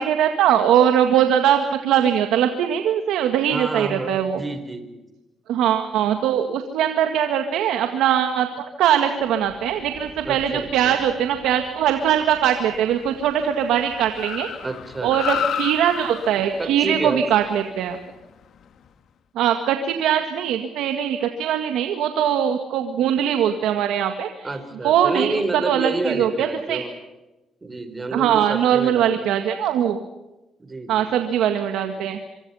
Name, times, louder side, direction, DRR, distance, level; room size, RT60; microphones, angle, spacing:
voice 1, 0.0-4.4 5.5-14.5 15.0-18.0 19.4-24.5 24.8-26.8 28.1-30.0 30.9-32.2, right 9 dB, 85° right, 6 dB, 1.9 m, -21 dB
voice 2, 3.5-5.0 10.2-11.0 14.6-15.4 16.6-17.2 24.4-26.9 27.6-29.2 30.6-31.1, right 2 dB, 25° right, 10 dB, 4.5 m, -29 dB
Car, 9.3-18.9, left 9 dB, 65° left, 1.9 m, -34 dB
25.5 x 24.5 x 5.7 m, 1.0 s
cardioid pair, 90°, 0 cm